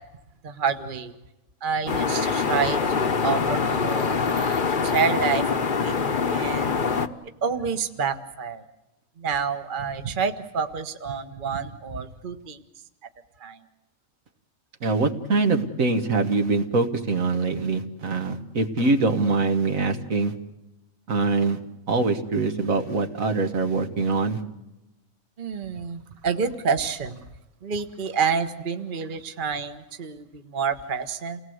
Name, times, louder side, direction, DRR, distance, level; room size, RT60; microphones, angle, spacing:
voice 1, 0.4-1.1 1.6-5.9 6.3-6.8 7.4-8.6 9.2-12.6 13.4-13.6 25.4-27.2 27.6-31.4, right 5 dB, 40° right, 8 dB, 1.3 m, -28 dB
sound 1, 1.9-7.1, left 5 dB, 40° left, 1.1 m, -24 dB
voice 2, 14.8-20.3 21.1-21.6 21.9-24.4, right 3 dB, 70° right, 6 dB, 1.9 m, -23 dB
29.0 x 19.0 x 7.9 m, 0.96 s
omnidirectional pair, 1.5 m